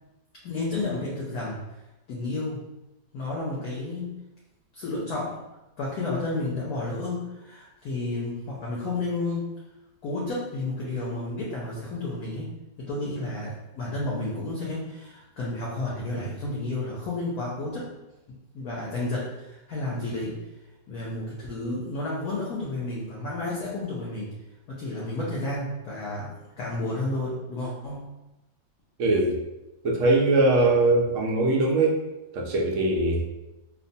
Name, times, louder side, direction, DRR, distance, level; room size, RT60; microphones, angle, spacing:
voice 1, 0.4-1.6 2.1-2.6 3.1-4.2 4.7-5.4 5.8-9.5 10.0-12.5 12.8-17.9 18.5-20.4 20.9-24.3 24.7-28.1, left 2 dB, 70° left, -5 dB, 1.0 m, -31 dB
voice 2, 29.0-29.4 29.8-32.0 32.3-33.2, right 2 dB, 85° right, -1 dB, 0.6 m, -21 dB
2.9 x 2.1 x 2.6 m, 0.98 s
omnidirectional pair, 2.0 m